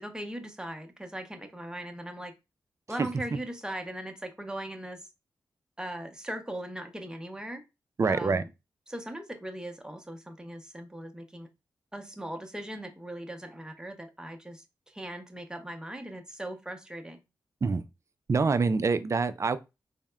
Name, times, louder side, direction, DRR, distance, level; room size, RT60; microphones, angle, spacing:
voice 1, 0.0-2.3 2.9-5.0 5.8-7.6 8.1-8.5 8.9-11.5 11.9-17.2, right 1 dB, 10° right, 0.7 m, -39 dB
voice 2, 8.0-8.4 17.6-17.8 18.3-19.6, right 4 dB, 40° right, 0.3 m, -25 dB
3.4 x 2.1 x 2.2 m
supercardioid pair, 40°, 8 cm